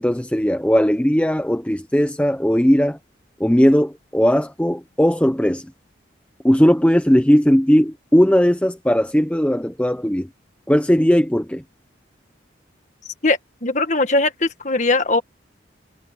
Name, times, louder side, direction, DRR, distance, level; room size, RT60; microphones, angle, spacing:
voice 1, 0.0-3.0 3.4-5.7 6.4-10.3 10.7-11.6, equal, 5° left, 0.7 m, -17 dB
voice 2, 13.2-15.2, left 2 dB, 40° left, 1.6 m, -20 dB
head